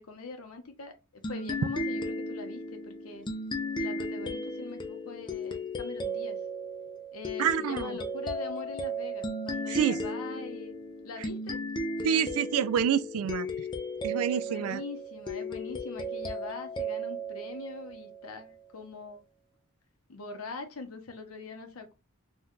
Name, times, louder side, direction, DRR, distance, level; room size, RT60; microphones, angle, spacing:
voice 1, 0.0-3.3 3.8-6.4 7.1-10.7 11.0-11.6 14.3-19.2 20.1-21.9, left 4 dB, 75° left, 0.7 m, -43 dB
sound 1, 1.2-18.4, equal, 20° left, 0.4 m, -35 dB
voice 2, 7.4-8.0 9.7-10.0 12.0-13.5 14.0-14.8, right 8 dB, 75° right, 0.3 m, -27 dB
2.7 x 2.2 x 3.6 m
head